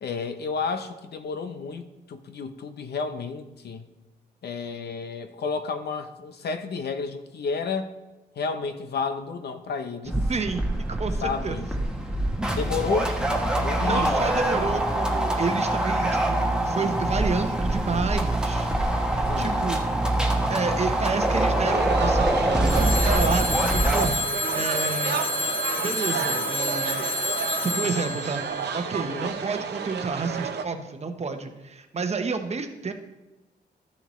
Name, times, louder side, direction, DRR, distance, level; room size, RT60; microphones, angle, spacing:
voice 1, 0.0-3.9 4.4-7.9 8.4-10.2 11.2-11.7 12.5-14.3 14.6-14.8 19.3-19.6 29.0-29.4, left 5 dB, 65° left, 9 dB, 0.7 m, -31 dB
sound 1, 10.1-24.0, right 1 dB, 5° right, 1.1 m, -24 dB
voice 2, 10.3-10.6 10.9-11.6 13.8-19.9 20.5-24.2 24.5-25.2 25.8-27.1 27.6-28.4 28.7-32.9, right 4 dB, 40° right, 6 dB, 0.9 m, -30 dB
sound 2, 21.7-30.6, right 6 dB, 75° right, 0.7 m, -31 dB
Telephone, 22.7-29.5, left 2 dB, 30° left, 1.2 m, -29 dB
12.5 x 6.9 x 3.1 m, 1.0 s
cardioid pair, 100°, 18 cm